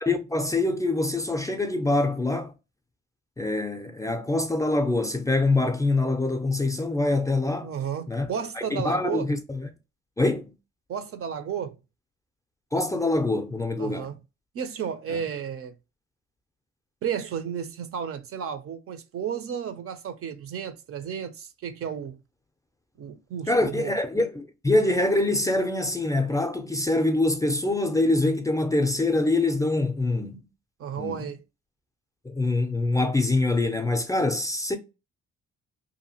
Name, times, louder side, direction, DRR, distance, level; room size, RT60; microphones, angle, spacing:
voice 1, 0.0-2.5 3.4-7.7 8.1-8.3 8.6-9.7 10.2-10.5 12.7-14.1 15.1-15.2 23.5-30.4 31.0-31.3 32.2-34.8, left 2 dB, 10° left, 0.4 m, -24 dB
voice 2, 7.6-9.3 10.9-11.8 13.8-14.2 14.5-15.7 17.0-22.2 23.0-23.9 30.8-31.4, right 8 dB, 50° right, 0.5 m, -33 dB
2.7 x 2.4 x 2.7 m
supercardioid pair, 75°, 30 cm